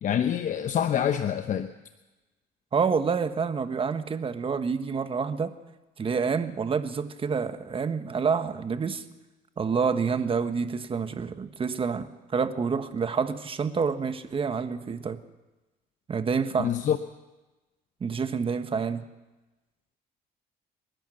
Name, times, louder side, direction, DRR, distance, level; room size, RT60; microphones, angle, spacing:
voice 1, 0.0-1.7 16.6-17.0, left 9 dB, 50° left, 9 dB, 0.9 m, -26 dB
voice 2, 2.7-5.5 6.0-9.0 9.6-15.2 16.1-16.7 18.0-19.1, right 5 dB, 30° right, 10 dB, 1.3 m, -28 dB
30.0 x 11.5 x 7.9 m, 1.1 s
cardioid pair, 110°, 17 cm